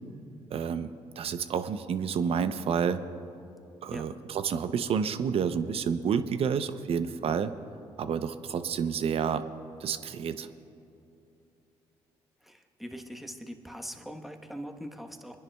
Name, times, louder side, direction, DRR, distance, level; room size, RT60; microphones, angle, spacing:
voice 1, 0.5-0.9 1.2-3.0 3.8-7.5 8.0-9.5 9.8-10.5, right 7 dB, 55° right, 11 dB, 0.6 m, -29 dB
voice 2, 12.4-15.4, equal, ahead, 4 dB, 1.1 m, -42 dB
27.5 x 10.5 x 2.3 m, 2.7 s
supercardioid pair, 60°, 12 cm